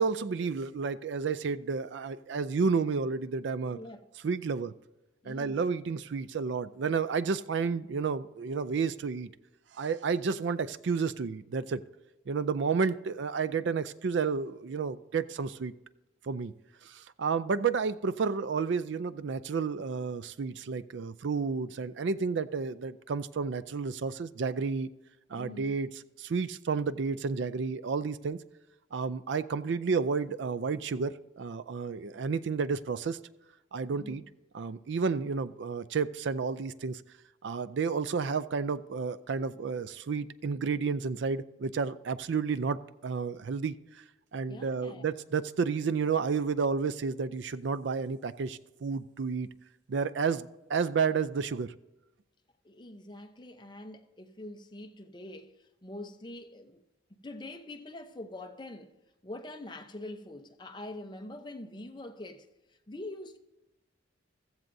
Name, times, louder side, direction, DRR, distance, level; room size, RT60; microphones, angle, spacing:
voice 1, 0.0-3.8 4.2-4.8 5.2-9.3 9.7-11.8 12.3-15.7 16.2-16.5 16.8-24.9 25.3-28.4 28.9-33.2 33.7-34.2 34.5-37.0 37.4-44.0 44.3-49.5 49.9-51.7, right 5 dB, 65° right, 0.4 m, -31 dB
voice 2, 5.2-5.6 25.3-25.8 33.9-34.3 44.4-45.1 52.6-55.6 55.8-56.8 57.2-58.9 59.2-62.5 62.9-63.4, left 1 dB, 25° left, 0.7 m, -44 dB
15.0 x 14.5 x 2.7 m
head